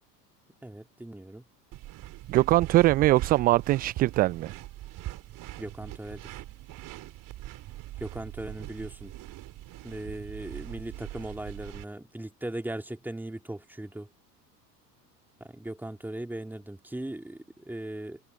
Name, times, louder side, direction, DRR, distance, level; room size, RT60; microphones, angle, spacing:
voice 1, 0.6-1.4 5.6-6.4 8.0-9.1 9.8-14.1 15.4-18.2, right 1 dB, 5° right, 2.8 m, -38 dB
sound 1, 1.7-11.8, right 16 dB, 40° right, 3.5 m, -41 dB
voice 2, 2.3-4.5, right 17 dB, 20° right, 0.4 m, -22 dB
figure-of-eight pair, 80°, 48 cm